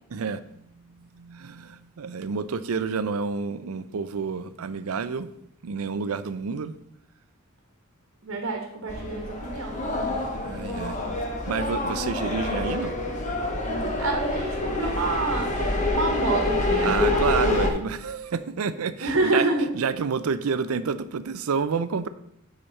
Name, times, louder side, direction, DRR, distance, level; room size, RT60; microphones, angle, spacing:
voice 1, 0.1-0.6 1.2-5.3 5.6-6.7 10.5-11.0 11.5-13.0 16.8-19.5 19.7-22.1, right 5 dB, 90° right, 14 dB, 0.5 m, -29 dB
voice 2, 8.2-9.8 13.6-17.2 19.0-19.7, right 2 dB, 70° right, 2 dB, 1.3 m, -28 dB
sound 1, 8.9-17.7, left 2 dB, 35° left, 1.2 m, -27 dB
8.8 x 5.1 x 4.0 m, 0.76 s
head